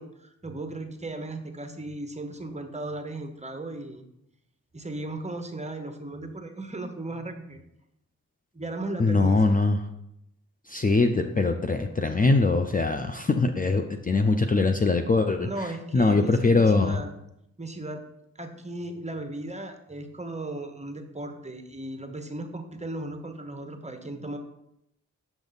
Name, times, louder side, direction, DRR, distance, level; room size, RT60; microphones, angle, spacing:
voice 1, 0.0-4.1 4.7-7.6 8.5-9.5 15.4-17.1 17.6-18.0 18.4-24.4, right 2 dB, 20° right, 6 dB, 1.0 m, -36 dB
voice 2, 9.0-9.8 10.7-15.5 15.9-17.0, left 3 dB, 25° left, 6 dB, 0.6 m, -22 dB
7.3 x 5.2 x 4.0 m, 0.81 s
cardioid pair, 50°, 34 cm